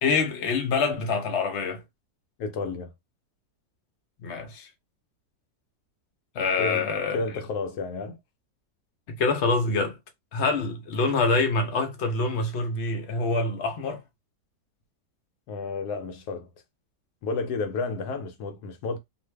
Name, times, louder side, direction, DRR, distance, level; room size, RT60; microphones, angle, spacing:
voice 1, 0.0-1.8 4.2-4.7 6.3-7.2 9.1-10.0 10.3-14.0, left 3 dB, 50° left, 0.9 m, -26 dB
voice 2, 2.4-2.9 6.6-6.9 7.1-8.2 15.5-16.5 17.2-19.0, left 4 dB, 80° left, 1.1 m, -31 dB
2.6 x 2.5 x 3.3 m
omnidirectional pair, 1.7 m